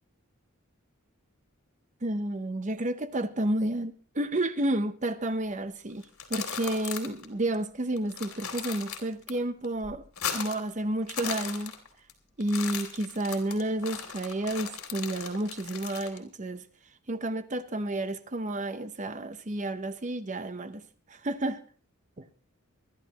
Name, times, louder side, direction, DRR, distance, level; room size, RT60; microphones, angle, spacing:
voice 1, 2.0-10.0 10.3-11.7 12.4-16.6 17.1-20.8 21.1-21.6 22.2-22.3, right 1 dB, 35° right, 0.7 m, -31 dB
sound 1, 6.0-7.3 7.5-7.6 8.0-9.3 9.6-10.7 11.0-12.1 12.4-16.2, left 7 dB, 85° left, 2.7 m, -37 dB
24.5 x 11.0 x 3.0 m
head